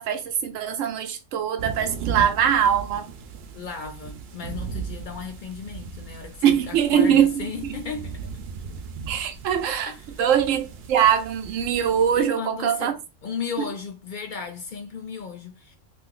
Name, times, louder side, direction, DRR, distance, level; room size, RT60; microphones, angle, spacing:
voice 1, 0.0-3.1 6.4-7.8 9.1-12.9 13.6-13.7, right 9 dB, 90° right, 1.0 m, -22 dB
sound 1, 1.6-12.3, right 6 dB, 65° right, 0.7 m, -37 dB
voice 2, 3.5-8.1 9.9-10.0 12.1-12.9 13.2-15.8, left 6 dB, 55° left, 0.6 m, -35 dB
2.7 x 2.5 x 3.8 m
omnidirectional pair, 1.3 m